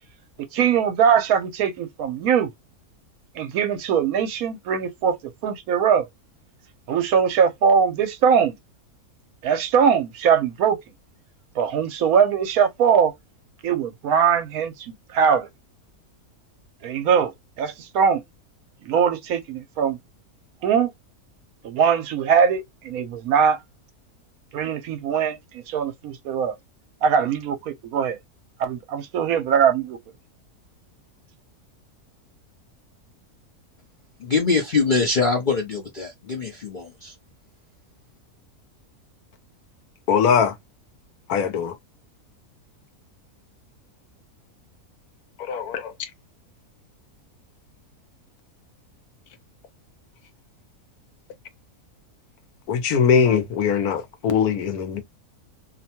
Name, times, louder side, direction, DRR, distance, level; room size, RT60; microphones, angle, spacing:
voice 1, 0.5-2.5 3.4-5.2 5.4-6.1 6.9-8.5 9.4-10.8 11.6-13.1 13.6-15.5 16.8-17.3 17.6-18.2 18.8-20.0 20.6-20.9 21.6-23.6 24.5-26.6 27.0-28.2 28.6-30.0, right 7 dB, 75° right, 1.0 m, -21 dB
voice 2, 34.2-37.1, left 4 dB, 60° left, 0.5 m, -23 dB
voice 3, 40.1-40.5 41.3-41.7 45.5-45.8 52.7-55.0, left 6 dB, 75° left, 1.1 m, -21 dB
2.7 x 2.2 x 2.8 m
omnidirectional pair, 1.6 m